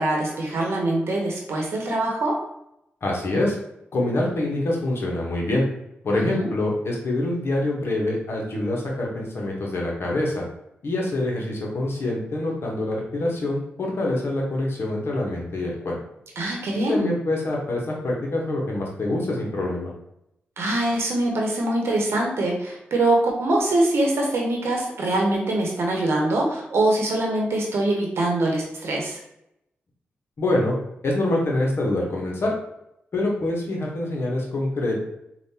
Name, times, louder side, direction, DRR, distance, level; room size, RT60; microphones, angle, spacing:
voice 1, 0.0-2.3 6.1-6.5 16.4-17.1 20.6-29.2, right 2 dB, 75° right, -1 dB, 0.8 m, -23 dB
voice 2, 3.0-3.6 3.9-5.7 6.0-10.4 10.8-16.0 16.7-19.9 30.4-30.8 31.0-32.5 33.1-35.0, left 1 dB, 65° left, -2 dB, 1.1 m, -25 dB
3.5 x 2.5 x 2.8 m, 0.80 s
cardioid pair, 45°, 4 cm